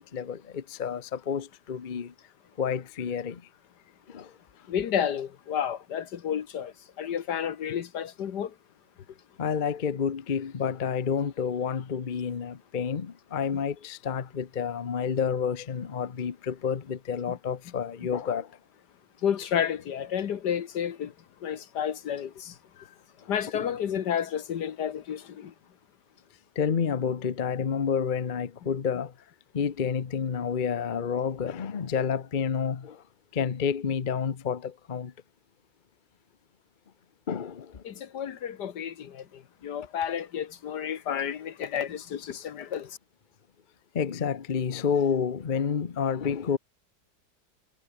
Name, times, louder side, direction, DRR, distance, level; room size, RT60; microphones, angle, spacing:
voice 1, 0.0-2.1 2.6-3.4 4.1-4.4 9.4-18.6 22.8-22.9 23.2-23.7 26.6-29.1 29.5-33.0 33.3-35.1 37.3-37.8 43.9-46.6, left 7 dB, 35° left, 0.9 m, -29 dB
voice 2, 4.7-8.5 19.2-21.1 21.4-22.5 23.3-25.5 37.8-42.9, left 8 dB, 70° left, 1.7 m, -31 dB
omnidirectional pair, 1.9 m